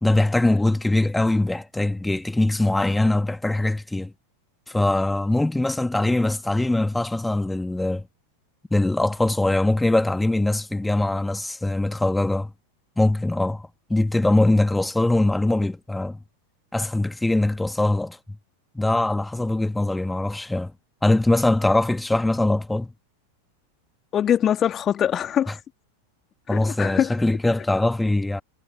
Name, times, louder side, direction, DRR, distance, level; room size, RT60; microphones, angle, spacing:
voice 1, 0.0-4.1 4.7-8.1 8.7-12.5 13.0-16.2 16.7-18.2 18.7-20.7 21.0-22.9 25.5-25.6 26.5-28.4, left 2 dB, 5° left, 2.1 m, -22 dB
voice 2, 24.1-25.5 26.5-27.1, left 9 dB, 25° left, 2.2 m, -22 dB
figure-of-eight pair, 90°, 0 cm